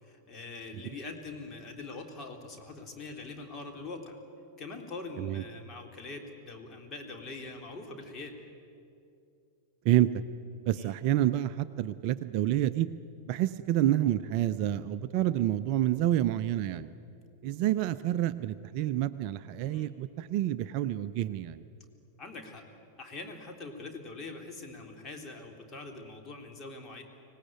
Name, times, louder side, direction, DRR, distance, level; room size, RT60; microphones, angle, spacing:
voice 1, 0.0-4.2 4.6-8.4 10.7-11.0 19.6-19.9 22.2-22.6 23.0-27.0, left 3 dB, 25° left, 3 dB, 3.4 m, -43 dB
voice 2, 9.8-10.2 10.7-12.9 13.3-16.9 17.4-21.6, right 13 dB, 45° right, 13 dB, 0.6 m, -28 dB
24.5 x 18.5 x 9.1 m, 2.6 s
figure-of-eight pair, 90°, 0 cm